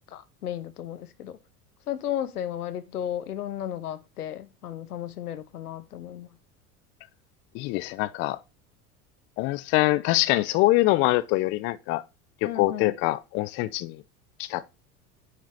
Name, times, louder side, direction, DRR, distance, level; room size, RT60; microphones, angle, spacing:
voice 1, 0.1-1.4 1.9-6.3 12.4-13.0, left 10 dB, 75° left, 0.9 m, -34 dB
voice 2, 7.5-8.4 9.4-12.0 12.4-14.0 14.4-14.7, left 18 dB, 30° left, 0.4 m, -24 dB
9.4 x 4.1 x 4.8 m
figure-of-eight pair, 75°, 46 cm